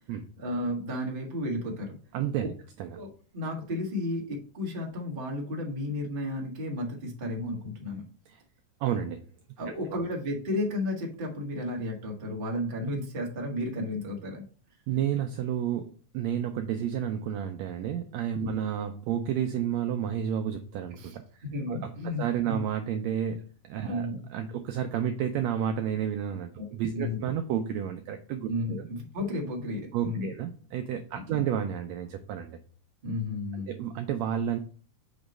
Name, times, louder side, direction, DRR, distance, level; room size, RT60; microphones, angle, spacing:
voice 1, 0.4-2.0 2.4-2.5 2.9-8.0 9.6-14.4 18.4-18.5 20.9-21.2 21.5-22.6 23.8-24.3 26.6-26.7 26.9-27.2 28.5-30.3 31.1-31.4 33.0-33.7, left 1 dB, 35° right, -1 dB, 0.8 m, -33 dB
voice 2, 2.1-2.5 2.8-3.0 8.3-8.4 8.8-9.2 14.9-21.2 21.7-21.9 22.2-28.9 29.9-32.6 33.7-34.6, right 9 dB, 80° right, 6 dB, 1.5 m, -31 dB
6.3 x 3.0 x 5.1 m, 0.41 s
omnidirectional pair, 3.5 m